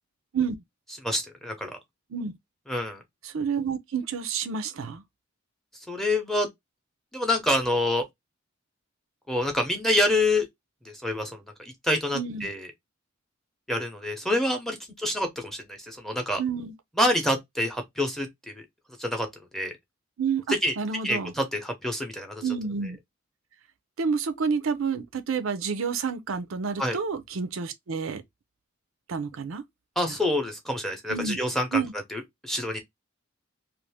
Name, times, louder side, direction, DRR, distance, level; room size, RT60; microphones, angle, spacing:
voice 1, 1.0-1.8 2.7-3.0 5.9-6.5 7.1-8.0 9.3-10.5 10.8-11.4 11.8-12.7 13.7-16.4 17.0-18.6 19.0-19.3 19.5-19.7 20.5-20.7 21.0-22.4 26.8-27.0 30.0-31.8 32.1-32.8, left 1 dB, ahead, 0.7 m, -27 dB
voice 2, 3.2-5.0 12.1-12.5 16.4-16.7 20.2-21.3 22.4-23.0 24.0-28.2 29.1-29.6 31.1-31.4 31.7-31.9, right 5 dB, 75° right, 0.5 m, -29 dB
2.6 x 2.5 x 3.3 m
head